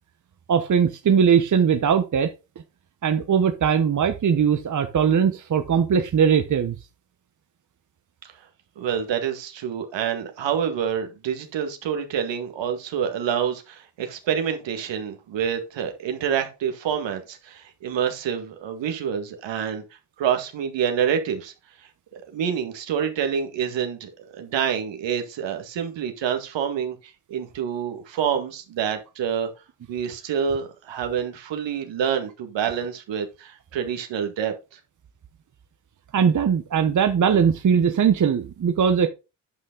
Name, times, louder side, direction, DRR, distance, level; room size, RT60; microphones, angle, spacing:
voice 1, 0.5-2.3 3.0-6.8 36.1-39.1, right 7 dB, 40° right, 1.1 m, -20 dB
voice 2, 8.8-19.8 20.2-21.5 22.1-27.0 27.3-29.5 29.9-34.8, right 8 dB, 65° right, 2.0 m, -27 dB
9.6 x 5.5 x 3.9 m
supercardioid pair, 60°, 47 cm